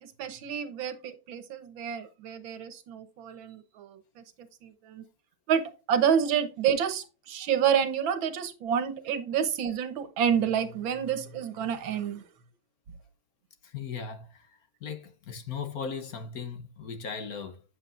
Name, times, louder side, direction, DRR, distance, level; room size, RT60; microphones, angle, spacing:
voice 1, 0.0-5.0 5.5-5.6 5.9-12.2, right 8 dB, 85° right, 1.8 m, -29 dB
voice 2, 13.6-17.6, left 6 dB, 55° left, 1.3 m, -38 dB
8.2 x 7.6 x 2.5 m
omnidirectional pair, 2.1 m